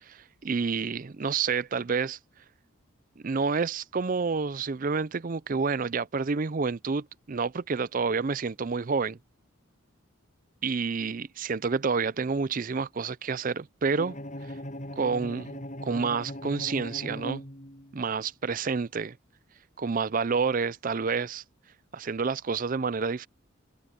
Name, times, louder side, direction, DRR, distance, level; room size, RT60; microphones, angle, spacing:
voice 1, 0.0-2.2 3.2-9.2 10.6-14.2 15.0-17.4 17.9-19.2 19.8-21.4 21.9-23.3, right 5 dB, 40° right, 0.5 m, -29 dB
Bowed string instrument, 13.9-18.1, left 1 dB, 35° left, 7.6 m, -39 dB
head